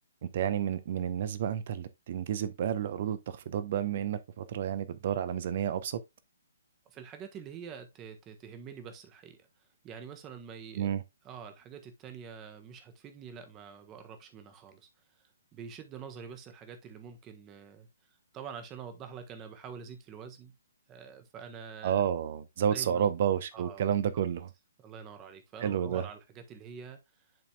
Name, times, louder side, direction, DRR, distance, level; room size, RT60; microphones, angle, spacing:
voice 1, 0.2-6.0 10.8-11.0 21.8-24.5 25.6-26.0, right 9 dB, 45° right, 0.8 m, -30 dB
voice 2, 6.9-9.5 9.8-11.0 11.2-14.9 15.5-17.9 18.3-20.5 20.9-22.0 22.7-23.1 23.5-24.2 24.8-27.3, right 6 dB, 20° right, 1.3 m, -46 dB
10.5 x 4.2 x 2.3 m
figure-of-eight pair, 130°, 0 cm